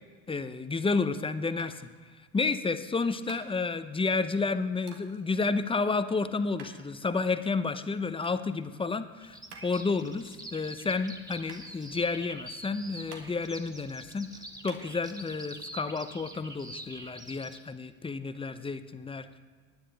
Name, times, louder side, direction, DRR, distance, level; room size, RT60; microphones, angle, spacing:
voice 1, 0.3-1.9 2.3-14.3 14.6-19.4, left 4 dB, 10° left, 11 dB, 0.6 m, -31 dB
sound 1, 1.6-14.8, right 5 dB, 85° right, 1.6 m, -53 dB
Bird vocalization bird call bird song, 9.2-17.6, right 1 dB, 10° right, 1.3 m, -46 dB
19.5 x 9.8 x 3.4 m, 1.5 s
hypercardioid pair, 75°, 44 cm